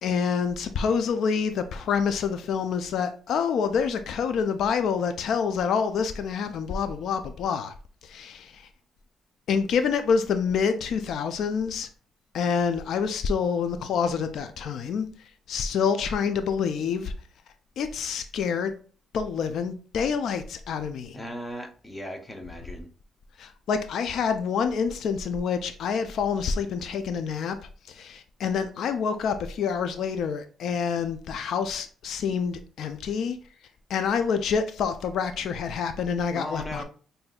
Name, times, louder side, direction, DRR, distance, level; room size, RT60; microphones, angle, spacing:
voice 1, 0.0-7.7 8.0-8.7 9.5-11.9 12.3-15.1 15.5-17.1 17.8-18.7 19.1-21.2 23.4-27.6 27.9-33.4 33.9-36.8, left 6 dB, 70° left, 0.3 m, -27 dB
voice 2, 21.1-22.9 36.3-36.8, equal, 15° left, 0.8 m, -37 dB
5.7 x 2.6 x 2.3 m
cardioid pair, 90°, 0 cm